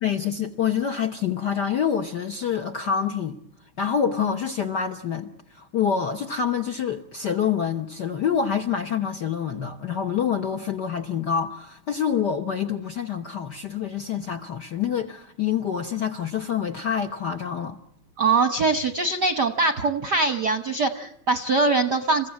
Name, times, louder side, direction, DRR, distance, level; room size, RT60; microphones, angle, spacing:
voice 1, 0.0-3.4 3.8-17.8, left 7 dB, 65° left, 1.0 m, -26 dB
voice 2, 18.2-22.3, right 3 dB, 60° right, 1.1 m, -22 dB
28.0 x 15.5 x 8.7 m
omnidirectional pair, 3.4 m